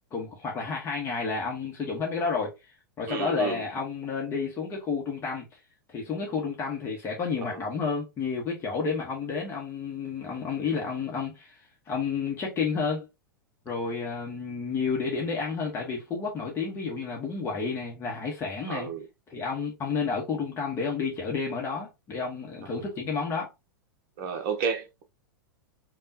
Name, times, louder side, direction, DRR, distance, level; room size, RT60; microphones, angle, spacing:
voice 1, 0.1-5.4 5.9-13.1 13.6-18.9 19.3-23.5, left 5 dB, 25° left, 1.0 m, -31 dB
voice 2, 3.1-3.6 18.7-19.0 24.2-25.0, right 6 dB, 40° right, 0.8 m, -31 dB
5.3 x 2.3 x 2.7 m
figure-of-eight pair, 95°, 12 cm